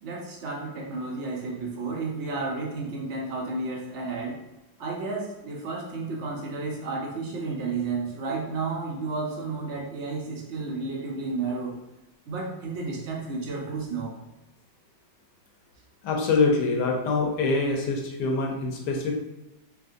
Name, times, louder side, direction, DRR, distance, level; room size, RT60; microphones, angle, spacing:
voice 1, 0.0-4.4 4.8-11.8 12.3-14.1, right 3 dB, 80° right, -1 dB, 0.6 m, -32 dB
voice 2, 16.0-19.3, left 3 dB, 70° left, 1 dB, 1.3 m, -25 dB
3.6 x 3.5 x 2.6 m, 0.94 s
omnidirectional pair, 2.0 m